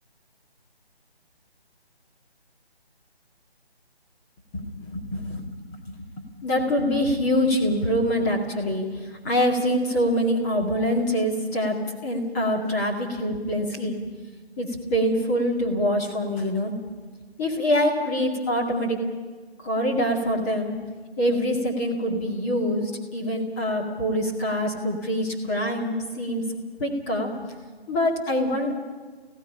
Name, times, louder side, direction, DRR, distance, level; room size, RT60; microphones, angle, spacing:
voice 1, 4.5-6.1 6.4-14.1 14.6-16.7 17.4-19.0 19.6-20.8 21.2-26.4 26.8-27.3 27.9-28.7, equal, 15° left, -1 dB, 2.3 m, -25 dB
30.0 x 16.5 x 5.6 m, 1.4 s
figure-of-eight pair, 160°, 32 cm